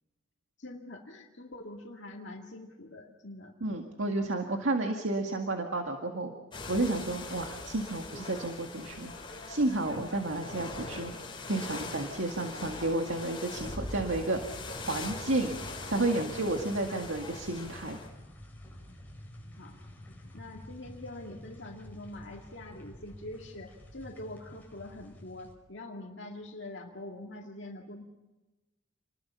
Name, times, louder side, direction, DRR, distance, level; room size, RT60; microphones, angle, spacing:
voice 1, 0.6-3.6 10.6-10.7 19.6-19.8 20.3-28.0, left 1 dB, 60° left, 0 dB, 2.2 m, -44 dB
voice 2, 3.6-6.3 6.7-9.1 9.5-11.1 11.5-14.6 14.9-15.5 15.9-18.0, right 2 dB, 75° right, 3 dB, 2.0 m, -31 dB
sound 1, 6.5-18.1, left 3 dB, 25° left, 5.2 m, -41 dB
sound 2, 15.0-25.5, left 1 dB, 10° left, 4.9 m, -50 dB
29.0 x 21.0 x 5.7 m, 1.1 s
head